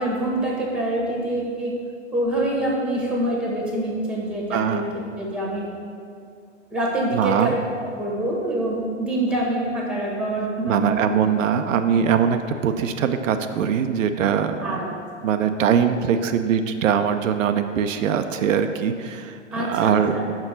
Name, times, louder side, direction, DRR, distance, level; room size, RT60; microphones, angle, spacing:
voice 1, 0.0-1.7 2.1-5.7 6.7-7.5 7.8-11.0 12.2-12.3 14.6-14.9 15.3-15.4 19.5-20.3, right 1 dB, 5° right, -2 dB, 1.3 m, -25 dB
voice 2, 4.5-4.8 7.1-7.5 10.6-12.4 12.6-14.9 15.2-20.2, right 7 dB, 85° right, 8 dB, 0.5 m, -22 dB
5.9 x 4.5 x 5.7 m, 2.3 s
hypercardioid pair, 115°, 38 cm